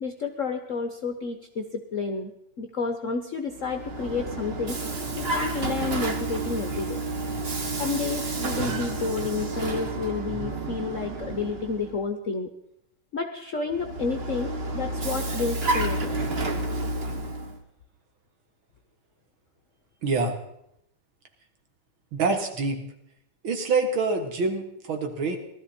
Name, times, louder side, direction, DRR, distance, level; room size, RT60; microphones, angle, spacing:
voice 1, 0.0-2.3 2.6-4.8 5.2-7.0 7.8-12.5 13.1-16.2, left 4 dB, 55° left, 6 dB, 0.9 m, -30 dB
Vehicle, 3.5-12.0 13.7-17.6, right 2 dB, 35° right, 1.0 m, -30 dB
voice 2, 20.0-20.4 22.1-22.8 23.4-25.4, right 4 dB, 65° right, 4 dB, 2.4 m, -26 dB
18.5 x 13.0 x 4.3 m, 0.77 s
omnidirectional pair, 2.4 m